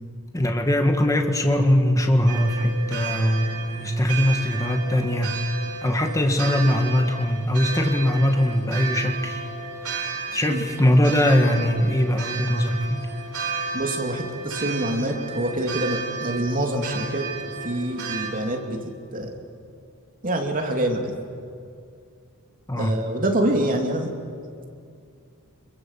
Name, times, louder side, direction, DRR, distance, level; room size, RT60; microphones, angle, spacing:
voice 1, 0.3-5.3 5.8-9.5 9.8-10.0 10.3-13.1 22.7-22.9, left 1 dB, 15° left, 4 dB, 1.6 m, -21 dB
sound 1, 2.3-18.3, right 4 dB, 70° right, 4.4 m, -33 dB
voice 2, 13.7-17.2 17.6-18.8 19.1-19.4 20.2-21.1 22.8-24.1, right 1 dB, 40° right, 2 dB, 2.8 m, -25 dB
27.0 x 22.5 x 7.4 m, 2.4 s
head